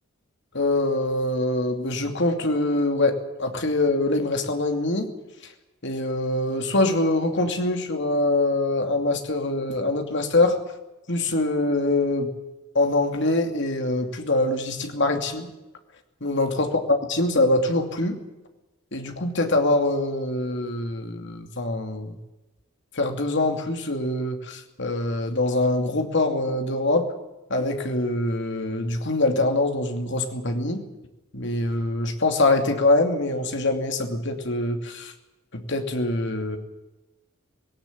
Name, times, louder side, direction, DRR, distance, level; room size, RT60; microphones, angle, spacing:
voice 1, 0.5-5.1 5.8-10.6 11.1-12.3 12.7-15.5 16.2-18.2 18.9-22.2 22.9-27.1 27.5-30.8 31.3-35.1 35.5-36.6, left 2 dB, 55° left, 5 dB, 2.7 m, -24 dB
18.0 x 17.5 x 9.5 m, 1.0 s
head